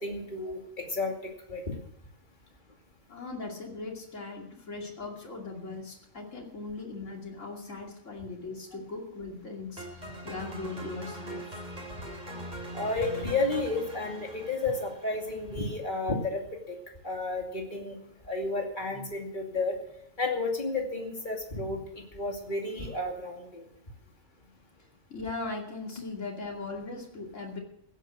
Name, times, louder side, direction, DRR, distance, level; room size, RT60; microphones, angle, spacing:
voice 1, 0.0-1.7 12.7-16.4 16.7-16.8 17.0-18.0 18.3-19.7 20.2-23.7, left 3 dB, 40° left, 1 dB, 2.8 m, -32 dB
voice 2, 3.1-11.8 24.8-27.6, left 3 dB, 85° left, 0 dB, 3.0 m, -39 dB
sound 1, 9.8-15.9, right 1 dB, 35° right, 3.0 m, -42 dB
16.0 x 9.1 x 6.4 m, 0.77 s
omnidirectional pair, 1.3 m